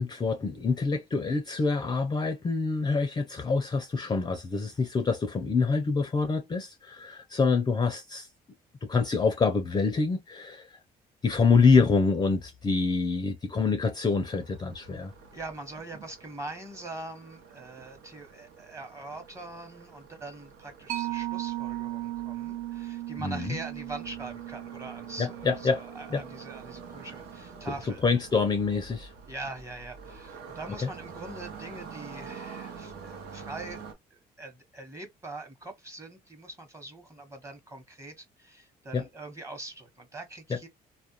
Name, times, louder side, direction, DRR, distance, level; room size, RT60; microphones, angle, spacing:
voice 1, 0.0-8.3 8.8-10.7 11.2-15.1 23.2-23.6 25.2-25.8 26.1-26.2 27.7-27.8 28.0-29.1 38.9-39.0, left 4 dB, 25° left, 0.4 m, -26 dB
sound 1, 14.1-33.9, right 5 dB, 70° right, 0.8 m, -47 dB
voice 2, 15.3-28.0 29.3-40.7, right 2 dB, 15° right, 1.0 m, -43 dB
Mallet percussion, 20.9-28.0, right 15 dB, 55° right, 0.5 m, -37 dB
2.4 x 2.1 x 2.9 m
cardioid pair, 110°, 17 cm